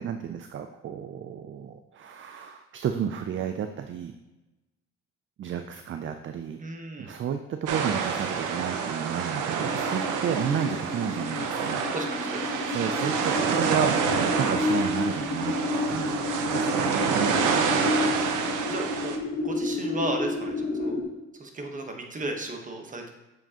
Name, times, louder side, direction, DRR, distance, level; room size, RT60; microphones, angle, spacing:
voice 1, 0.0-4.1 5.4-6.6 7.0-11.8 12.6-17.4, right 8 dB, 40° right, 7 dB, 0.4 m, -32 dB
voice 2, 6.6-7.1 11.9-12.5 15.8-16.1 18.7-19.2 19.4-20.9 21.3-23.1, right 1 dB, 25° right, 3 dB, 1.1 m, -35 dB
sound 1, 7.7-19.2, right 6 dB, 90° right, 0.7 m, -28 dB
sound 2, 9.4-21.0, left 3 dB, 40° left, 1.2 m, -31 dB
7.6 x 4.8 x 2.9 m, 1.0 s
cardioid pair, 90°, 30 cm